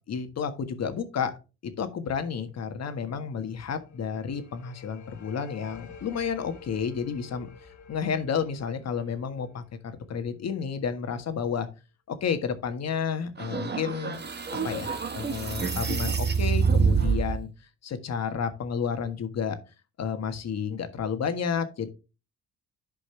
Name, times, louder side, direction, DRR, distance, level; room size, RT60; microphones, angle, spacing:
voice 1, 0.1-1.3 1.6-7.5 7.9-11.7 12.1-14.2 14.6-17.5 17.8-19.6 20.0-21.9, left 6 dB, 60° left, 9 dB, 1.6 m, -31 dB
End Or Beginning Processed Gong, 3.4-10.5, left 5 dB, 75° left, 2.5 m, -50 dB
sound 1, 13.4-17.4, right 5 dB, 35° right, 1.5 m, -26 dB
12.0 x 5.2 x 3.3 m, 0.30 s
cardioid pair, 90°, 30 cm